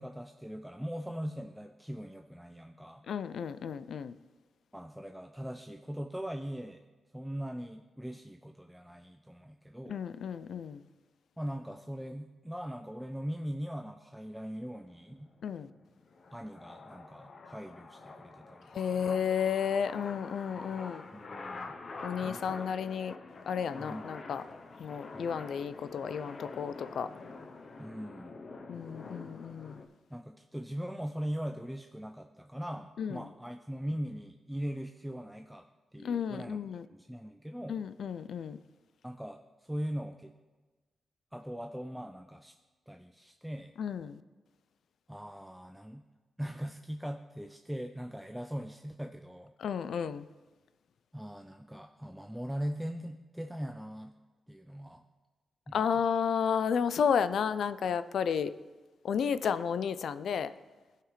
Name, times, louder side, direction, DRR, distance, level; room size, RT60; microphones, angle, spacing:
voice 1, 0.0-3.0 4.7-6.9 7.1-10.0 11.4-15.3 16.3-19.1 21.1-21.7 22.2-22.6 23.8-24.2 25.1-25.5 27.8-28.4 30.1-36.6 36.9-37.8 39.0-40.3 41.3-42.6 42.9-43.7 45.1-46.0 46.4-49.5 51.1-54.1 54.5-55.0 55.7-56.0, equal, 5° right, 0.5 m, -40 dB
voice 2, 3.1-4.1 9.9-10.8 15.4-15.7 18.7-21.1 22.0-23.2 23.5-24.4 24.8-27.1 28.7-29.8 33.0-33.2 36.0-36.9 37.7-38.6 43.8-44.2 49.6-50.3 55.7-58.5 59.0-60.5, left 7 dB, 75° left, 0.3 m, -32 dB
sound 1, 14.5-29.9, left 3 dB, 55° left, 0.7 m, -47 dB
16.0 x 5.7 x 3.2 m
cardioid pair, 65°, 0 cm